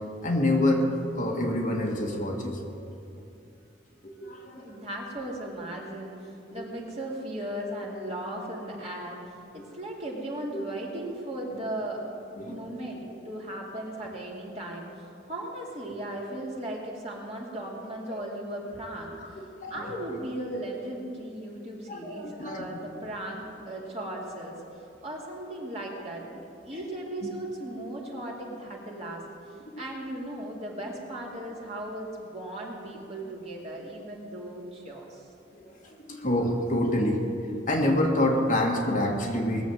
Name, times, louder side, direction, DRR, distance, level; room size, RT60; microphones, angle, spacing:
voice 1, 0.2-0.9 1.2-3.2 4.0-4.8 6.5-6.6 9.6-9.7 10.5-10.6 12.4-12.6 18.1-18.3 19.2-19.8 21.9-22.7 26.7-26.8 29.7-29.8 35.6-37.3 37.7-39.6, left 1 dB, 40° left, 0 dB, 1.7 m, -27 dB
voice 2, 4.6-12.1 12.5-24.6 25.0-29.2 29.8-35.3, right 1 dB, 35° right, -3 dB, 2.4 m, -37 dB
19.5 x 7.1 x 7.7 m, 2.5 s
head